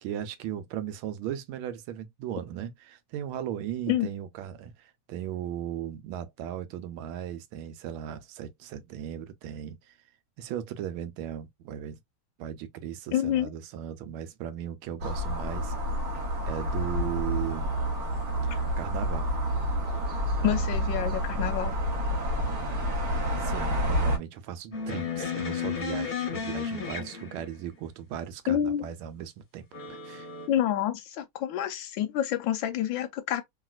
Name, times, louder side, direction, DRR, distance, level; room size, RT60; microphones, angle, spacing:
voice 1, 0.0-9.9 10.4-12.0 12.4-15.8 16.5-17.7 18.4-19.3 20.4-20.7 23.4-30.3, right 10 dB, 80° right, 1.4 m, -37 dB
voice 2, 13.1-13.5 20.4-21.8 28.5-28.9 30.5-33.4, left 11 dB, 75° left, 1.2 m, -28 dB
sound 1, 15.0-24.2, equal, 55° right, 1.2 m, -29 dB
sound 2, 24.7-27.7 29.7-30.5, left 6 dB, 35° left, 0.8 m, -33 dB
3.0 x 2.7 x 2.3 m
omnidirectional pair, 2.3 m